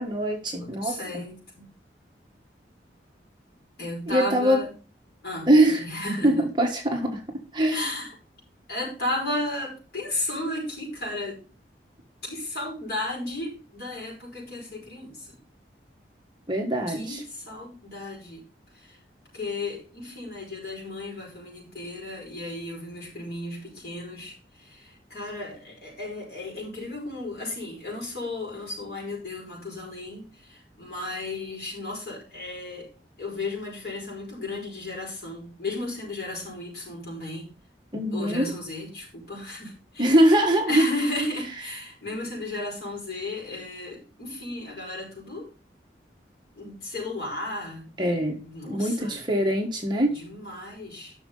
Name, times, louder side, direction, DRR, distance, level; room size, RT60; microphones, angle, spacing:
voice 1, 0.0-1.2 4.1-4.6 5.5-5.8 6.2-7.2 7.5-7.8 16.5-17.2 37.9-38.4 40.0-40.8 48.0-48.4 48.7-50.2, right 1 dB, 25° right, 1 dB, 1.6 m, -22 dB
voice 2, 0.6-1.7 3.8-4.7 5.2-6.4 7.7-8.1 8.7-11.4 12.2-15.4 16.9-18.4 18.7-19.0 19.3-32.9 33.2-37.5 38.1-40.2 40.7-45.5 46.6-48.0 48.4-49.2 50.1-51.1, left 2 dB, 60° left, -2 dB, 5.2 m, -34 dB
10.5 x 6.3 x 3.9 m, 0.34 s
head